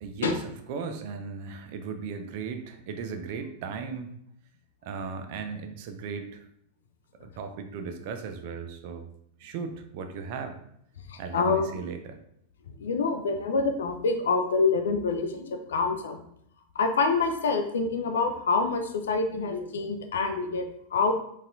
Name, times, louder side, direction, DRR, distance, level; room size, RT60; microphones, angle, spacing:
voice 1, 0.0-4.1 4.8-6.4 7.2-9.1 9.4-10.6 11.2-12.2, right 5 dB, 50° right, 7 dB, 0.4 m, -36 dB
voice 2, 11.1-11.7 12.8-16.2 16.8-20.6 20.9-21.1, left 4 dB, 65° left, 6 dB, 0.4 m, -26 dB
4.0 x 2.4 x 2.6 m, 0.72 s
figure-of-eight pair, 90°, 0 cm